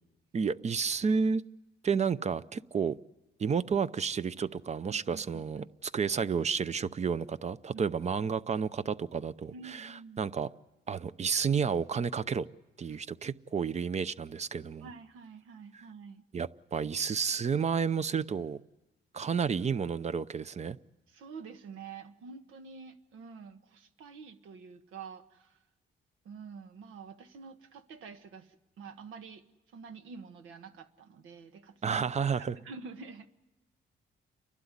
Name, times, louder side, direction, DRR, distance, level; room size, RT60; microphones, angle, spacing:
voice 1, 0.3-1.4 1.8-3.0 3.4-5.6 5.9-10.5 10.9-12.5 12.8-14.9 16.3-18.6 19.1-20.8 31.8-32.5, right 6 dB, 35° right, 15 dB, 0.6 m, -31 dB
voice 2, 4.8-5.7 7.7-7.9 9.5-10.3 12.9-13.0 14.8-16.2 21.1-25.6 26.2-29.4 29.7-32.0 32.4-33.3, right 5 dB, 85° right, 8 dB, 1.4 m, -48 dB
30.0 x 12.0 x 9.8 m, 1.1 s
cardioid pair, 90°, 20 cm